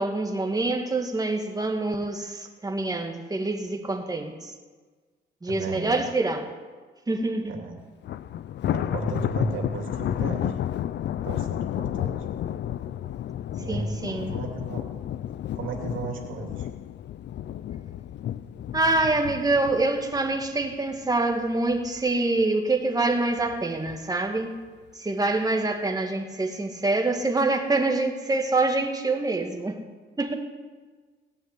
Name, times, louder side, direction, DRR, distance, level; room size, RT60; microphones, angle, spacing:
voice 1, 0.0-4.5 5.4-6.5 7.1-7.5 13.7-14.3 18.7-24.6 24.9-29.8 30.2-30.3, right 2 dB, 20° right, 3 dB, 2.2 m, -26 dB
voice 2, 5.5-6.1 7.5-7.7 8.7-10.6 11.2-12.3 13.6-14.9 15.5-16.7, right 4 dB, 80° right, 1 dB, 2.9 m, -34 dB
Thunder, 8.0-21.3 21.7-22.0 22.4-22.5 23.4-23.9, left 11 dB, 60° left, 0.6 m, -32 dB
18.0 x 6.5 x 10.0 m, 1.4 s
cardioid pair, 90°, 20 cm